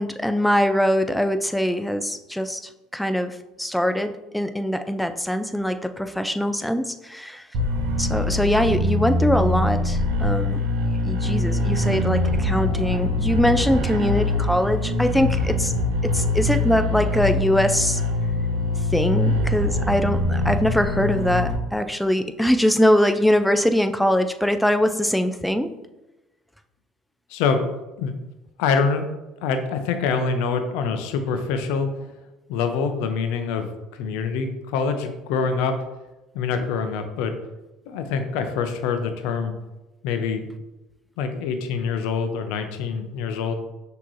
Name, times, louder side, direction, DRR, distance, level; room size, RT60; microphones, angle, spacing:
voice 1, 0.0-2.6 2.9-7.4 8.0-10.6 11.0-15.7 16.0-18.0 18.9-25.7, equal, ahead, 8 dB, 0.4 m, -22 dB
sound 1, 7.5-21.6, left 2 dB, 75° right, 0.8 m, -23 dB
voice 2, 27.3-27.7 28.0-28.2 28.6-29.0 29.4-31.9 32.5-35.7 36.3-37.3 37.9-39.5 40.0-40.5 41.2-43.5, left 5 dB, 75° left, 7 dB, 0.5 m, -25 dB
6.0 x 2.9 x 3.0 m, 1.0 s
supercardioid pair, 90°, 0 cm